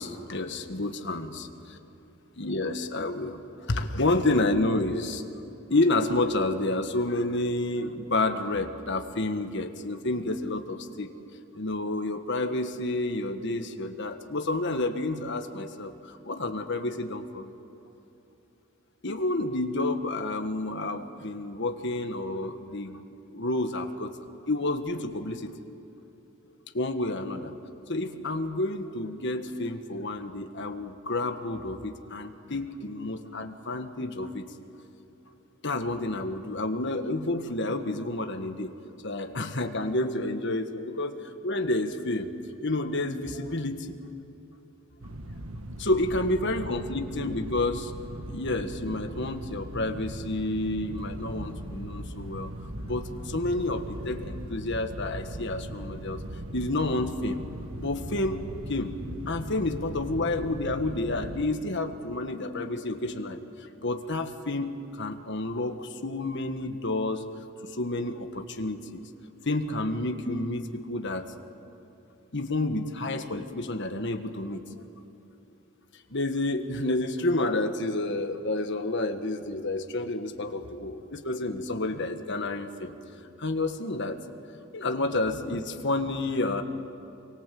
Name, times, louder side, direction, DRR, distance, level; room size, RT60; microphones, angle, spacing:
voice 1, 0.0-1.5 2.4-5.2 5.7-11.1 11.5-17.5 19.0-23.0 23.3-24.2 24.5-25.5 26.7-27.6 27.9-34.4 35.6-38.7 39.0-41.2 41.4-42.3 42.6-43.9 45.8-47.9 48.3-52.5 52.8-56.2 56.5-57.4 57.8-58.4 58.7-59.0 59.2-67.2 67.6-69.1 69.4-71.3 72.3-74.6 76.1-82.9 83.4-84.2 84.7-86.6, left 2 dB, 55° left, 6 dB, 1.6 m, -30 dB
sound 1, 45.0-61.5, right 1 dB, 80° right, 1.6 m, -39 dB
26.5 x 24.0 x 7.7 m, 3.0 s
head